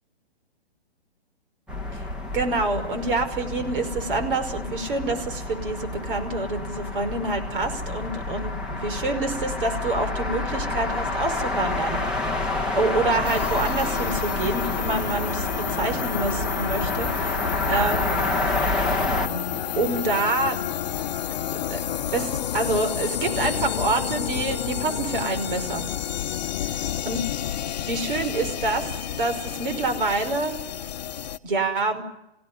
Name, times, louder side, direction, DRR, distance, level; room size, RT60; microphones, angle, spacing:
sound 1, 1.7-19.3, left 2 dB, 5° right, 1.0 m, -28 dB
voice 1, 2.3-12.0 12.4-12.5 12.8-18.2 18.9-20.6 21.7-21.8 22.1-25.8 26.2-26.3 27.0-27.2 27.9-30.5 31.4-32.0, right 3 dB, 55° right, 7 dB, 5.4 m, -27 dB
sound 2, 13.2-31.4, left 10 dB, 45° left, 0.9 m, -30 dB
28.0 x 16.5 x 9.7 m, 0.90 s
hypercardioid pair, 160°, 31 cm